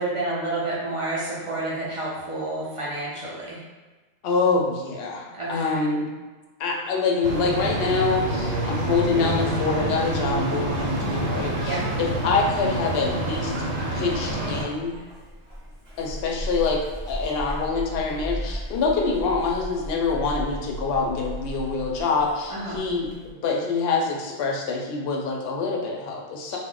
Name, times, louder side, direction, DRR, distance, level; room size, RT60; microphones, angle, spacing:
voice 1, 0.0-3.6 5.4-5.8 11.6-11.8 22.5-22.8 26.5-26.6, right 2 dB, 50° right, -8 dB, 0.3 m, -29 dB
voice 2, 4.2-6.1 6.6-13.5 13.9-14.9 16.0-23.1 23.4-26.6, left 4 dB, 65° left, -1 dB, 0.7 m, -25 dB
sound 1, 7.2-14.7, right 1 dB, 75° right, 0.9 m, -27 dB
Zipper (clothing), 11.6-23.3, equal, 25° right, 0.8 m, -37 dB
2.2 x 2.1 x 3.7 m, 1.2 s
omnidirectional pair, 1.3 m